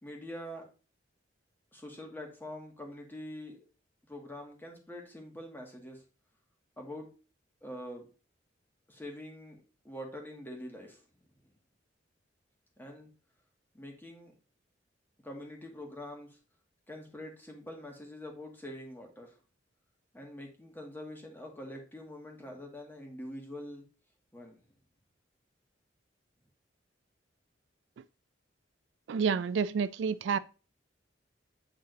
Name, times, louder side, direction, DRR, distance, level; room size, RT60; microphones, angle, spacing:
voice 1, 0.0-0.7 1.7-3.6 4.0-6.0 6.8-7.1 7.6-8.1 8.9-11.0 11.4-11.5 12.8-13.1 13.7-14.3 15.2-16.4 16.9-19.4 20.1-23.8 24.3-24.6, left 1 dB, 10° left, 1.9 m, -45 dB
voice 2, 29.1-30.4, right 6 dB, 70° right, 0.3 m, -29 dB
8.2 x 4.0 x 3.9 m
head